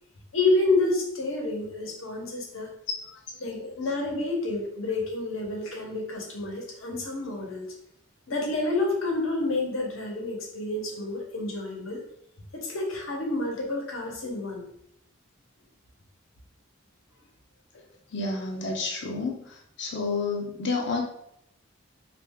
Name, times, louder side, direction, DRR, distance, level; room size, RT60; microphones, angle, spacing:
voice 1, 0.3-2.7 3.4-7.7 8.3-12.0 12.5-14.7, left 2 dB, 80° left, 0 dB, 1.0 m, -29 dB
voice 2, 18.1-19.4 19.8-21.0, left 3 dB, 55° left, 1 dB, 0.7 m, -29 dB
3.1 x 2.5 x 3.5 m, 0.75 s
head